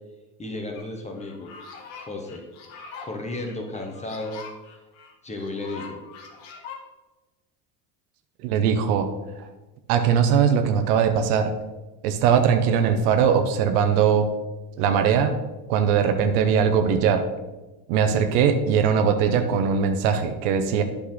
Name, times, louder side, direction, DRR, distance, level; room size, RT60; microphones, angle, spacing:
voice 1, 0.4-1.5 2.0-2.4 3.0-4.4 5.2-6.0, left 2 dB, 15° left, 3 dB, 1.4 m, -33 dB
sound 1, 0.8-0.9 1.2-6.8, left 5 dB, 75° left, 1.7 m, -43 dB
voice 2, 8.4-9.1 9.9-11.5 12.0-14.3 14.8-15.4 15.7-17.2 17.9-20.8, right 7 dB, 80° right, 7 dB, 1.1 m, -20 dB
8.7 x 6.6 x 4.0 m, 1.2 s
supercardioid pair, 115°, 44 cm